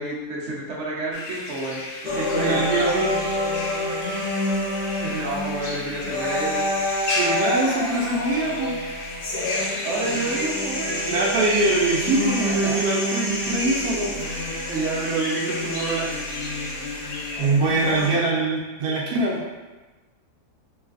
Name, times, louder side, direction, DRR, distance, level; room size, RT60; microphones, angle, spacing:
voice 1, 0.0-1.8 2.1-2.7 5.0-6.7 9.8-11.1 12.4-12.7 14.7-16.3, right 2 dB, 55° right, -4 dB, 0.9 m, -29 dB
sound 1, 1.1-17.4, left 2 dB, 90° left, 1.2 m, -34 dB
sound 2, 2.1-18.1, left 1 dB, 75° left, 1.4 m, -28 dB
voice 2, 2.3-3.1 7.0-8.7 11.1-14.6 17.4-19.4, right 2 dB, 75° right, -3 dB, 1.1 m, -23 dB
3.2 x 3.1 x 2.4 m, 1.2 s
omnidirectional pair, 1.7 m